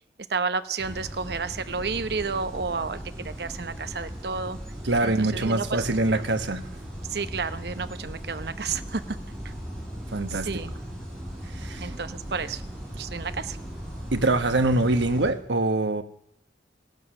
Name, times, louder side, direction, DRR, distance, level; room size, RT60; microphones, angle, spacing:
voice 1, 0.3-4.6 5.0-5.8 6.1-6.2 7.1-9.2 9.4-9.5 10.3-10.7 11.8-12.6 12.9-13.6, right 5 dB, 65° right, 12 dB, 0.8 m, -31 dB
sound 1, 0.8-15.3, equal, 5° left, 5.2 m, -38 dB
voice 2, 4.8-6.6 10.1-10.5 11.6-11.9 14.1-16.0, right 2 dB, 90° right, 8 dB, 1.3 m, -24 dB
16.0 x 12.0 x 6.5 m, 0.72 s
head